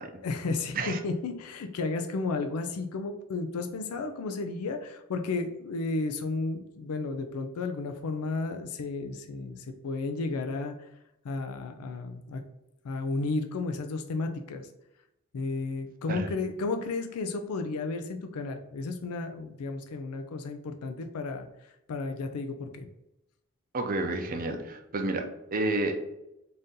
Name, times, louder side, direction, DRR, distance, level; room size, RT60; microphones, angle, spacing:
voice 1, 0.2-10.9 11.2-12.4 12.8-14.7 15.3-21.5 21.9-22.9, left 3 dB, 80° left, 6 dB, 0.4 m, -33 dB
voice 2, 23.7-26.2, right 2 dB, 40° right, 5 dB, 0.5 m, -30 dB
4.0 x 2.6 x 3.6 m, 0.89 s
head